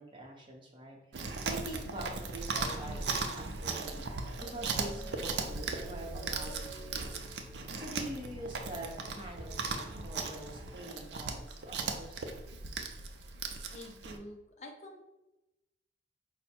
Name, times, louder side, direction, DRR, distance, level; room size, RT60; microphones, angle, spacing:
voice 1, 0.0-4.1 4.4-7.3 7.8-12.3, right 1 dB, 25° right, -2 dB, 0.8 m, -45 dB
Chewing mastication, 1.1-14.2, right 4 dB, 75° right, 0.4 m, -38 dB
sound 1, 3.6-10.7, right 1 dB, 20° left, 1.0 m, -50 dB
voice 2, 13.7-15.0, left 1 dB, 40° left, 2 dB, 0.5 m, -48 dB
4.5 x 2.1 x 4.3 m, 0.96 s
head